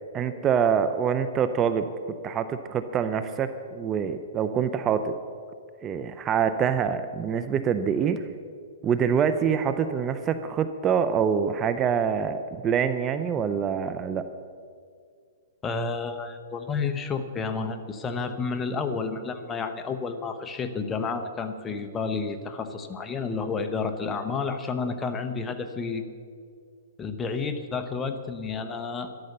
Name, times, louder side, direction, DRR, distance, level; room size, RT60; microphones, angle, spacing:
voice 1, 0.1-5.1 5.8-8.3 8.8-14.3, right 7 dB, 25° right, 10 dB, 0.6 m, -25 dB
voice 2, 15.6-26.0 27.0-29.1, left 4 dB, 15° left, 7 dB, 1.0 m, -30 dB
13.0 x 12.0 x 6.7 m, 2.2 s
hypercardioid pair, 140°, 0 cm